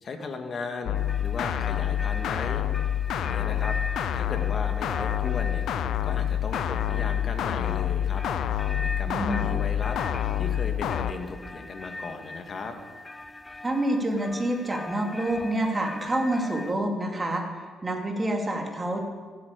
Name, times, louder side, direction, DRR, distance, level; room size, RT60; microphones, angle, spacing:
voice 1, 0.0-2.6 3.2-3.8 4.1-5.6 6.0-8.2 8.8-10.0 10.4-12.8, left 4 dB, 50° left, 5 dB, 1.9 m, -36 dB
sound 1, 0.9-11.1, left 10 dB, 75° left, 0.6 m, -27 dB
sound 2, 0.9-16.7, left 2 dB, 15° left, 0.8 m, -41 dB
voice 2, 9.1-9.5 13.6-17.4 17.8-19.0, right 1 dB, 25° right, 2 dB, 2.7 m, -27 dB
15.0 x 8.8 x 8.4 m, 1.5 s
cardioid pair, 90°, 0 cm